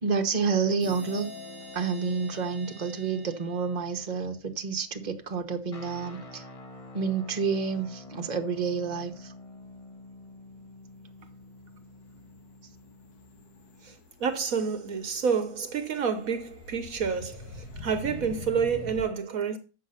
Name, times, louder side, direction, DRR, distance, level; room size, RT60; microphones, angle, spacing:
voice 1, 0.0-1.3 1.7-6.4 6.9-9.3, right 5 dB, 30° right, 1.2 m, -29 dB
sound 1, 0.8-4.4, left 2 dB, 45° left, 6.1 m, -45 dB
sound 2, 2.9-3.0 5.1-6.4 6.8-7.3 7.6-19.1, left 3 dB, 75° left, 1.8 m, -47 dB
sound 3, 5.7-14.0, left 2 dB, 25° left, 0.9 m, -48 dB
voice 2, 13.8-19.6, right 6 dB, 65° right, 1.4 m, -29 dB
8.3 x 6.9 x 5.7 m
omnidirectional pair, 1.6 m